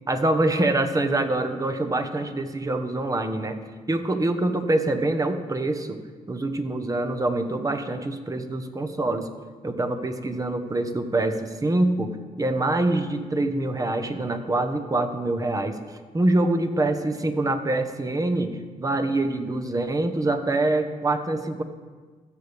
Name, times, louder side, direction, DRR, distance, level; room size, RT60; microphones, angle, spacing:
voice 1, 0.1-3.6 3.9-6.0 6.3-9.3 9.6-12.1 12.4-15.8 16.1-21.6, right 2 dB, 25° right, 7 dB, 1.1 m, -25 dB
16.0 x 6.8 x 3.5 m, 1.4 s
supercardioid pair, 65°, 14 cm